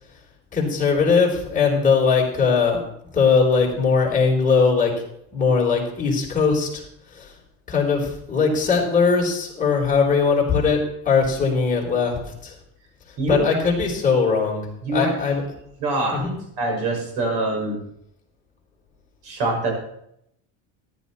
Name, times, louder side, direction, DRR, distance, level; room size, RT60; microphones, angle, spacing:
voice 1, 0.5-2.8 3.1-4.9 5.3-6.8 7.1-7.3 7.7-10.8 11.0-12.5 13.3-14.7 14.9-15.4 16.1-16.4, left 5 dB, 20° left, -2 dB, 4.0 m, -20 dB
voice 2, 14.8-15.1 15.8-16.2 16.6-17.8 19.2-19.7, right 2 dB, 65° right, 1 dB, 5.9 m, -24 dB
14.0 x 11.0 x 4.2 m, 0.76 s
supercardioid pair, 135°, 42 cm